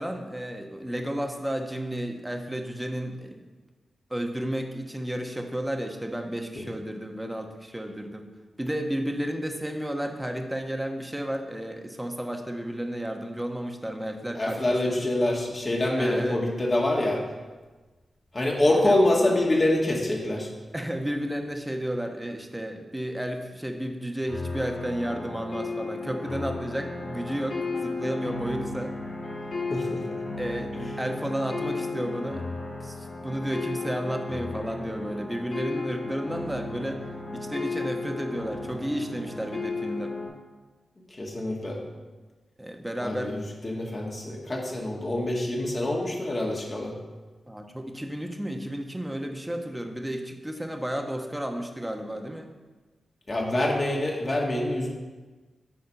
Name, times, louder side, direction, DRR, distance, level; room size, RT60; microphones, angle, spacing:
voice 1, 0.0-3.4 4.1-8.3 8.6-15.0 16.0-16.4 18.8-19.0 20.7-28.9 30.4-32.4 32.8-37.0 37.3-40.2 42.6-43.3 47.5-52.5, right 1 dB, 10° right, 4 dB, 1.1 m, -32 dB
voice 2, 14.4-17.2 18.3-20.5 29.7-30.0 41.2-41.8 43.0-43.4 43.6-46.9 53.3-54.9, left 1 dB, 40° left, -1 dB, 1.8 m, -25 dB
sound 1, 24.3-40.3, left 3 dB, 75° left, 2.3 m, -34 dB
7.9 x 4.2 x 5.4 m, 1.3 s
cardioid pair, 45°, 0 cm